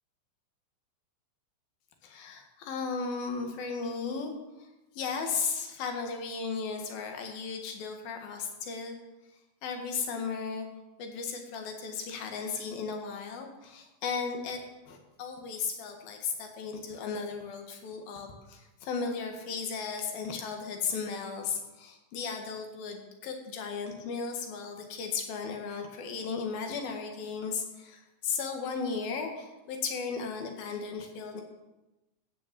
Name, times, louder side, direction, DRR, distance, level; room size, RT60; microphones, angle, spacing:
voice 1, 2.0-4.3 4.6-4.7 5.0-9.0 9.6-10.7 11.0-31.4, left 5 dB, 80° left, 4 dB, 3.6 m, -35 dB
16.0 x 6.5 x 7.5 m, 1.0 s
omnidirectional pair, 4.2 m